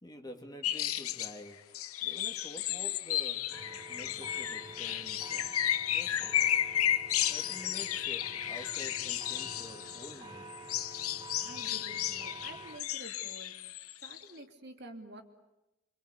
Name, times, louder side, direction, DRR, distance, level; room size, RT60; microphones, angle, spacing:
voice 1, 0.0-5.5 5.8-6.4 7.3-10.6, left 1 dB, 20° left, 4 dB, 2.6 m, -49 dB
sound 1, 0.6-1.3 1.7-10.2 10.5-14.2, left 11 dB, 90° left, 1.0 m, -33 dB
sound 2, 3.5-12.8, right 2 dB, 20° right, 1.4 m, -49 dB
voice 2, 11.4-13.6 14.0-15.2, right 1 dB, 50° right, 4 dB, 3.0 m, -49 dB
28.0 x 26.0 x 8.3 m, 0.95 s
head